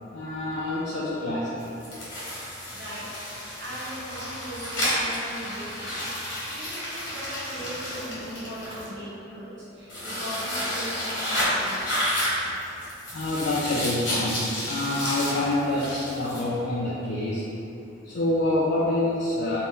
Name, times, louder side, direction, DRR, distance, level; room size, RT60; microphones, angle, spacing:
voice 1, 0.1-1.6 13.1-17.5 18.1-19.6, left 1 dB, 65° left, -6 dB, 0.3 m, -27 dB
sound 1, 1.6-8.9 9.9-16.4, equal, 85° left, 1.0 m, -31 dB
voice 2, 2.3-6.0 6.4-11.9, equal, 75° right, -9 dB, 0.9 m, -39 dB
2.5 x 2.1 x 3.6 m, 2.8 s
head